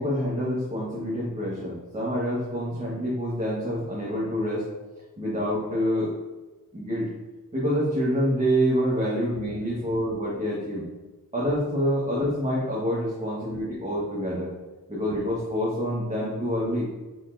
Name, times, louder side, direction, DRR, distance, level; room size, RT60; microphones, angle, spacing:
voice 1, 0.0-4.6 5.2-6.1 6.7-7.1 7.5-10.8 11.3-14.5 14.9-16.8, equal, 20° right, -6 dB, 1.2 m, -27 dB
4.3 x 4.2 x 2.6 m, 1.2 s
cardioid pair, 40°, 38 cm